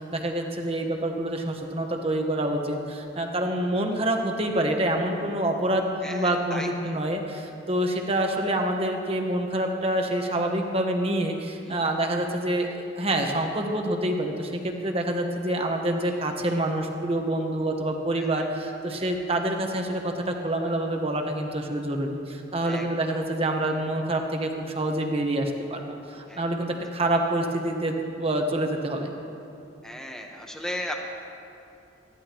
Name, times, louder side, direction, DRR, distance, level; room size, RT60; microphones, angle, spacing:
voice 1, 0.0-29.1, right 1 dB, 30° right, 3 dB, 1.3 m, -27 dB
voice 2, 6.0-7.0 11.6-11.8 18.2-18.5 22.6-23.3 26.3-26.8 29.8-30.9, equal, 5° left, 1 dB, 1.2 m, -37 dB
20.5 x 14.5 x 3.1 m, 2.7 s
head